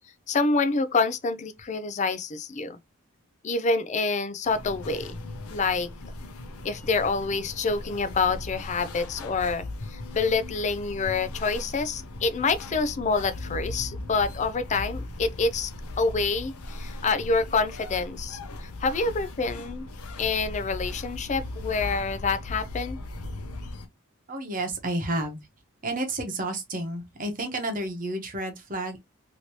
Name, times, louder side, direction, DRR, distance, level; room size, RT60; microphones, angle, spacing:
voice 1, 0.3-2.8 3.4-5.2 5.5-5.9 6.6-9.6 9.9-15.7 16.0-19.9 20.2-23.0, left 4 dB, 35° left, 0.4 m, -27 dB
sound 1, 4.5-23.9, left 2 dB, 85° left, 0.7 m, -38 dB
voice 2, 24.3-25.4 25.8-29.0, right 1 dB, 40° right, 0.9 m, -31 dB
3.1 x 2.8 x 2.8 m
head